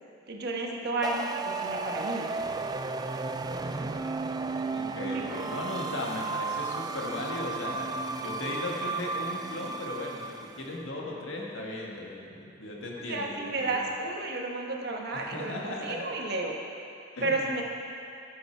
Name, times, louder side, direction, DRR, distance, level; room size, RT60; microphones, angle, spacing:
voice 1, 0.3-2.3 5.0-5.4 13.1-16.5 17.2-17.6, right 2 dB, 50° right, 0 dB, 1.3 m, -32 dB
sound 1, 1.0-10.7, right 3 dB, 20° right, 0.3 m, -34 dB
voice 2, 4.7-7.9 8.2-13.8 15.1-16.0 17.1-17.4, left 1 dB, 70° left, -2 dB, 1.7 m, -37 dB
15.0 x 6.8 x 4.6 m, 2.6 s
head